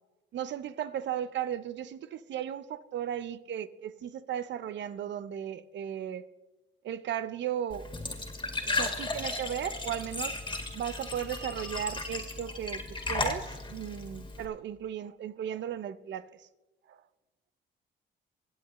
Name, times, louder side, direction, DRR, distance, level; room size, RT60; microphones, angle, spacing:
voice 1, 0.3-6.3 6.8-7.9 8.6-10.4 10.7-16.5 16.9-17.0, right 10 dB, 65° right, 0.7 m, -36 dB
Glass / Trickle dribble / Fill (with liquid), 7.7-14.4, left 3 dB, 25° left, 1.9 m, -35 dB
24.5 x 8.2 x 3.1 m
cardioid pair, 90°, 20 cm